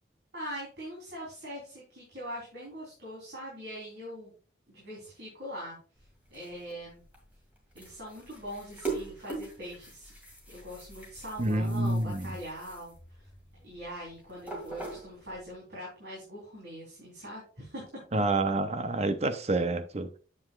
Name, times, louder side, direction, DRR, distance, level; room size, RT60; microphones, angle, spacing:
voice 1, 0.3-4.3 4.7-5.8 6.3-7.0 7.7-10.1 10.5-13.3 13.6-17.8 18.1-18.2, equal, 70° right, 3.5 m, -42 dB
sound 1, 6.0-15.5, right 3 dB, 10° right, 2.0 m, -43 dB
voice 2, 11.4-12.3 18.1-20.2, right 2 dB, 35° right, 0.7 m, -28 dB
8.6 x 7.6 x 2.4 m
head